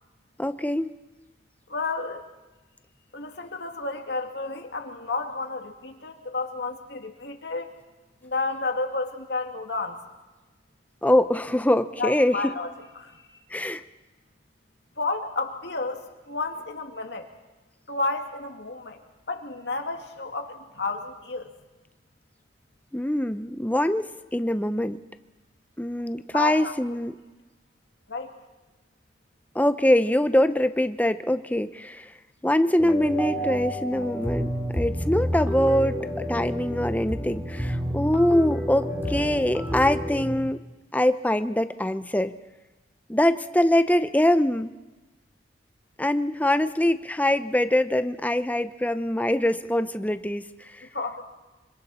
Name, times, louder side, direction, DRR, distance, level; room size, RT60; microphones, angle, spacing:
voice 1, 0.4-0.9 11.0-12.5 13.5-13.8 22.9-25.0 25.8-27.1 29.5-32.1 32.4-40.6 40.9-42.3 43.1-44.7 46.0-50.4 50.8-50.9, left 1 dB, 10° left, 11 dB, 0.7 m, -23 dB
voice 2, 1.7-2.2 3.1-7.7 8.2-10.0 12.0-13.2 15.0-17.3 17.9-19.0 19.3-21.5 26.3-27.0 28.1-28.3 50.9-51.3, left 3 dB, 75° left, 3 dB, 2.4 m, -31 dB
sound 1, 32.8-40.4, equal, 10° right, 3.0 m, -29 dB
26.0 x 25.5 x 4.3 m, 1.1 s
head